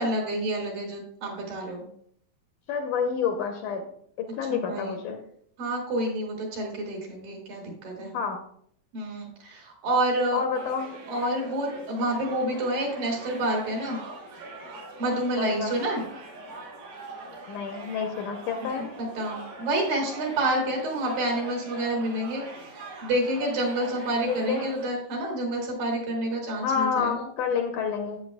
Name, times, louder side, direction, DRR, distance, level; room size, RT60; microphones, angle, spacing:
voice 1, 0.0-1.9 4.5-5.0 5.6-8.1 8.9-10.4 11.1-14.0 15.0-16.0 18.7-18.8 19.2-22.4 23.0-27.2, right 1 dB, 70° right, 0 dB, 3.9 m, -28 dB
voice 2, 2.7-3.9 4.2-5.2 8.1-8.4 10.3-10.9 15.4-15.7 17.5-18.9 24.3-24.7 26.6-28.2, left 6 dB, 75° left, 4 dB, 1.9 m, -28 dB
sound 1, 10.5-24.9, right 2 dB, 90° right, 3.9 m, -42 dB
11.0 x 8.7 x 2.2 m, 0.65 s
omnidirectional pair, 4.1 m